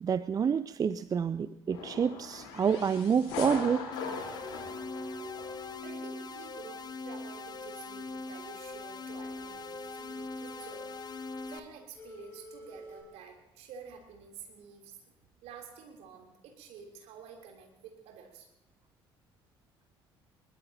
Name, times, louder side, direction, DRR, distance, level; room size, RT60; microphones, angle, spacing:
voice 1, 0.0-3.9, right 7 dB, 30° right, 15 dB, 0.5 m, -28 dB
sound 1, 1.7-5.8, left 4 dB, 60° left, 4.1 m, -40 dB
sound 2, 3.9-11.6, left 3 dB, 35° left, 1.1 m, -42 dB
sound 3, 4.4-5.9 6.2-11.6 11.9-13.0, left 1 dB, 15° left, 4.8 m, -48 dB
voice 2, 5.8-11.1 11.5-15.1 15.4-18.5, right 6 dB, 55° right, 1 dB, 3.5 m, -50 dB
21.5 x 21.5 x 2.9 m, 0.91 s
figure-of-eight pair, 55°, 13 cm